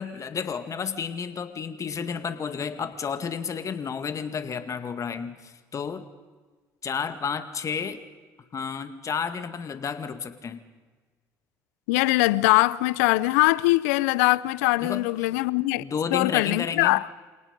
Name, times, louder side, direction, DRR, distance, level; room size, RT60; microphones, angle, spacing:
voice 1, 0.0-6.1 6.8-8.0 8.5-10.6 14.8-15.3 15.8-17.0, left 6 dB, 40° left, 2.1 m, -31 dB
voice 2, 11.9-15.8 16.1-17.1, left 20 dB, 90° left, 0.5 m, -22 dB
28.0 x 18.0 x 5.3 m
supercardioid pair, 75°, 8 cm